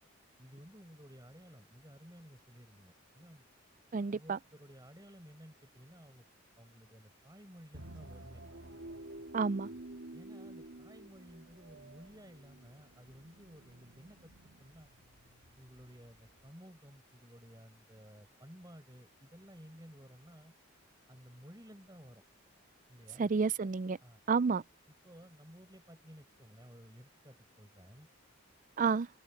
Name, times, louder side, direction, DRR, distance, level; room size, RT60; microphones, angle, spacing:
voice 1, 0.4-3.4 4.1-6.2 6.6-8.4 9.6-9.8 10.1-14.9 15.6-20.5 21.1-22.2 22.9-23.3 24.0-24.2 25.0-28.1, equal, 20° right, 6.2 m, -55 dB
voice 2, 3.9-4.4 9.3-9.7 23.2-24.0 24.3-24.6 28.8-29.1, right 5 dB, 35° right, 0.4 m, -30 dB
sound 1, 7.7-16.5, right 1 dB, 65° right, 2.3 m, -51 dB
open air
head